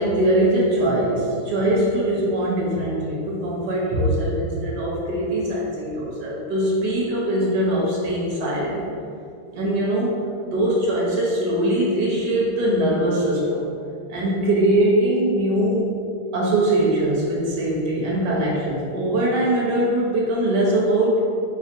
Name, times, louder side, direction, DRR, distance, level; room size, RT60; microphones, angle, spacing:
voice 1, 0.0-8.8 9.5-13.7 14.1-15.9 16.3-21.2, right 1 dB, 60° right, -4 dB, 1.4 m, -22 dB
4.3 x 2.3 x 4.5 m, 2.5 s
omnidirectional pair, 2.3 m